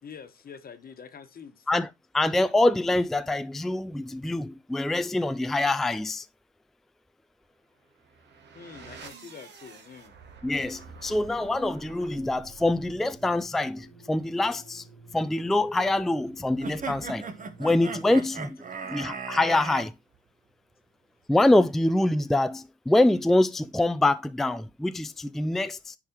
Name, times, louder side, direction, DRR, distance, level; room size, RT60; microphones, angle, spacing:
voice 1, 0.0-1.7 8.5-10.1 18.1-18.3, left 6 dB, 50° left, 1.3 m, -45 dB
voice 2, 2.1-6.2 10.4-14.8 15.1-17.2 17.6-18.6 18.9-19.9 21.3-26.0, left 2 dB, ahead, 0.4 m, -25 dB
sound 1, 7.8-18.6, right 5 dB, 65° right, 1.7 m, -50 dB
sound 2, 16.6-19.9, right 5 dB, 40° right, 1.2 m, -37 dB
10.0 x 4.8 x 2.9 m
cardioid pair, 90°, 20 cm